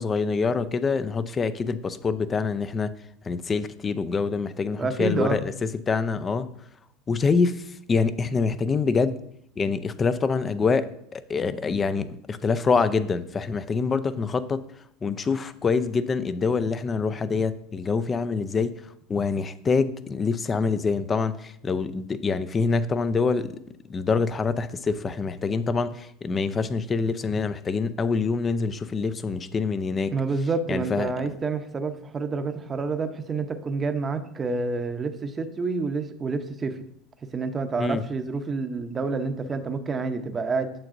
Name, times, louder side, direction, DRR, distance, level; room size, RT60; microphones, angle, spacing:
voice 1, 0.0-2.9 3.2-6.5 7.1-9.2 9.6-14.6 15.0-23.6 23.9-30.1 30.7-31.1 37.8-38.1, left 4 dB, 25° left, 0.5 m, -25 dB
voice 2, 4.8-5.4 30.1-36.8 37.3-40.7, right 4 dB, 25° right, 0.8 m, -28 dB
8.8 x 6.7 x 2.6 m
supercardioid pair, 100°, 0 cm